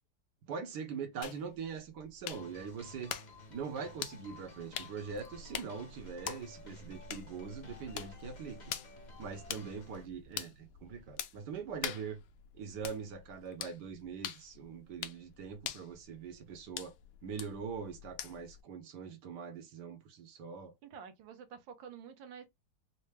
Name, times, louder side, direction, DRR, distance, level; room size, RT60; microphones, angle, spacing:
voice 1, 0.5-3.1 3.5-8.7 9.2-12.2 12.5-16.9 17.2-20.7, right 6 dB, 65° right, 1.4 m, -42 dB
sound 1, 1.2-18.6, left 9 dB, 85° left, 0.7 m, -46 dB
sound 2, 2.3-10.1, left 2 dB, 40° left, 0.6 m, -54 dB
voice 2, 20.8-22.4, right 7 dB, 90° right, 1.6 m, -49 dB
4.4 x 2.0 x 3.2 m
omnidirectional pair, 2.0 m